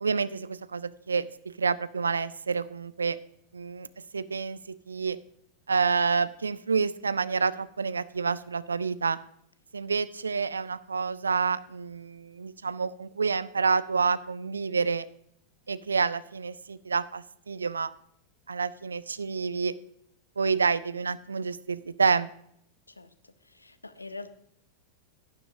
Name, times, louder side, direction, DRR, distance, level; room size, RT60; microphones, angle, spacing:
voice 1, 0.0-3.2 3.5-3.9 4.1-5.2 5.7-9.2 9.7-15.1 15.7-17.9 18.5-19.7 20.4-22.3, right 5 dB, 75° right, 17 dB, 0.4 m, -28 dB
voice 2, 22.9-24.3, left 3 dB, 80° left, 13 dB, 0.6 m, -44 dB
11.5 x 9.9 x 2.7 m, 0.71 s
figure-of-eight pair, 90°, 0 cm